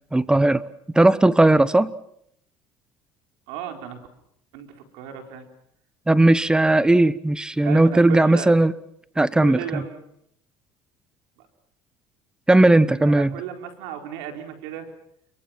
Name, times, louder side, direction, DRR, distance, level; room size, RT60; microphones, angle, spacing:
voice 1, 0.1-0.6 0.9-1.9 6.1-8.7 9.2-9.8 12.5-13.3, right 2 dB, 10° right, 17 dB, 1.1 m, -17 dB
voice 2, 3.5-4.0 4.5-5.5 7.6-8.5 9.2-10.0 12.9-14.9, right 9 dB, 90° right, 5 dB, 4.4 m, -35 dB
30.0 x 23.5 x 5.9 m, 0.71 s
cardioid pair, 110°, 9 cm